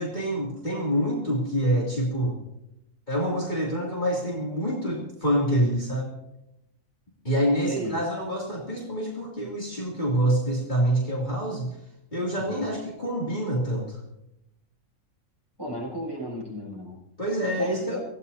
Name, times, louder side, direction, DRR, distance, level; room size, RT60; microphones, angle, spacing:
voice 1, 0.0-2.4 3.1-6.1 7.2-11.8 12.1-14.0 17.2-18.0, equal, 30° left, -4 dB, 2.9 m, -26 dB
voice 2, 7.7-8.0 12.5-12.7 15.6-17.0 17.6-18.0, equal, 15° right, -3 dB, 7.2 m, -33 dB
24.5 x 16.0 x 2.8 m, 0.85 s
omnidirectional pair, 1.5 m